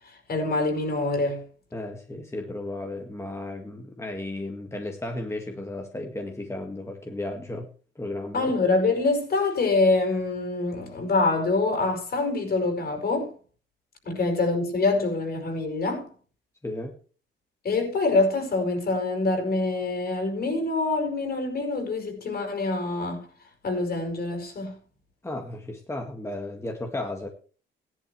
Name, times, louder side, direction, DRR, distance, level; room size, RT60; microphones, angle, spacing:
voice 1, 0.3-1.4 8.3-13.3 14.1-16.1 17.6-23.3 23.6-24.7, left 3 dB, 50° left, 5.6 m, -25 dB
voice 2, 1.7-7.7 8.0-8.5 16.6-17.0 25.2-27.3, left 2 dB, 15° left, 1.9 m, -34 dB
15.5 x 11.0 x 3.3 m
cardioid pair, 90°, 20 cm